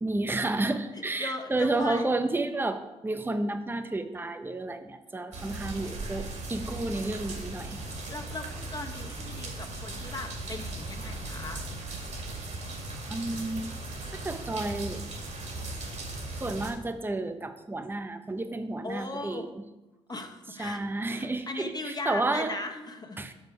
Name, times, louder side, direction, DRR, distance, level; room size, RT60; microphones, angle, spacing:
voice 1, 0.0-7.8 13.1-13.8 14.1-15.0 16.3-19.6 20.6-22.6 23.2-23.3, right 2 dB, 15° right, 8 dB, 0.8 m, -31 dB
voice 2, 0.9-2.1 8.1-11.6 18.8-19.5 20.1-23.3, left 2 dB, 25° left, 4 dB, 1.2 m, -38 dB
sound 1, 5.3-16.7, right 2 dB, 50° right, 2.2 m, -38 dB
6.6 x 6.3 x 4.9 m, 1.0 s
hypercardioid pair, 50°, 15 cm